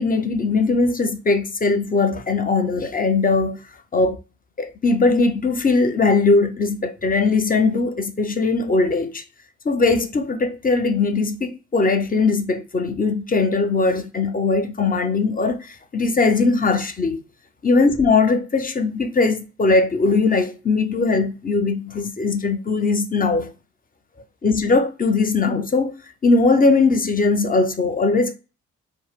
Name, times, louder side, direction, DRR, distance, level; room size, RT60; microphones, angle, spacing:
voice 1, 0.0-3.6 3.9-4.2 4.6-9.2 9.6-17.2 17.6-23.5 24.4-25.9 26.2-28.4, left 3 dB, 30° left, 0.6 m, -20 dB
2.1 x 2.0 x 3.5 m
supercardioid pair, 45°, 31 cm